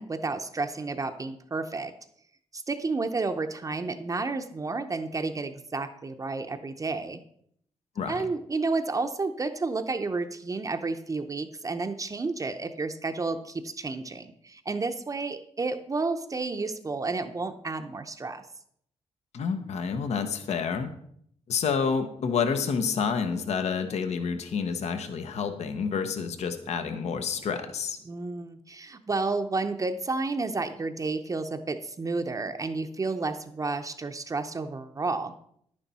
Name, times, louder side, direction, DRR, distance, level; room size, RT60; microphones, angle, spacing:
voice 1, 0.0-1.9 2.5-7.2 8.1-18.4 28.0-35.3, right 3 dB, 30° right, 7 dB, 0.7 m, -31 dB
voice 2, 19.3-20.9 21.5-28.0, left 6 dB, 70° left, 9 dB, 1.0 m, -29 dB
10.5 x 9.9 x 4.2 m, 0.68 s
cardioid pair, 110°, 12 cm